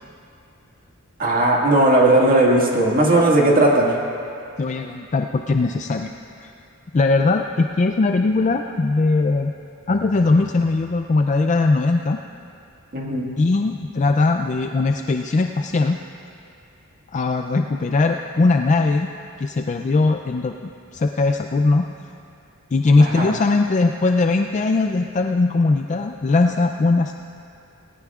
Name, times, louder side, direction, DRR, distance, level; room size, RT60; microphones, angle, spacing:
voice 1, 1.2-3.9 12.9-13.4 23.0-23.3, right 1 dB, 40° right, -2 dB, 1.8 m, -17 dB
voice 2, 4.6-6.1 6.4-6.5 6.9-9.5 9.9-12.2 13.4-16.0 17.1-19.1 19.4-21.8 22.7-27.1, left 3 dB, 35° left, 5 dB, 0.4 m, -20 dB
19.0 x 17.5 x 2.4 m, 2.6 s
head